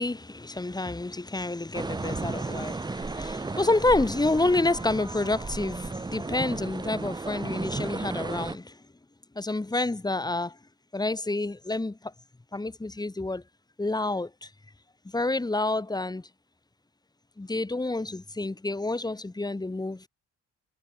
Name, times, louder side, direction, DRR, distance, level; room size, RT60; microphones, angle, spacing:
voice 1, 0.0-8.8 9.3-10.6 10.9-12.1 12.5-13.4 13.8-14.5 15.0-16.3 17.4-20.1, left 2 dB, 15° left, 2.0 m, -28 dB
sound 1, 1.7-8.6, right 3 dB, 15° right, 0.7 m, -34 dB
cardioid pair, 90°, 30 cm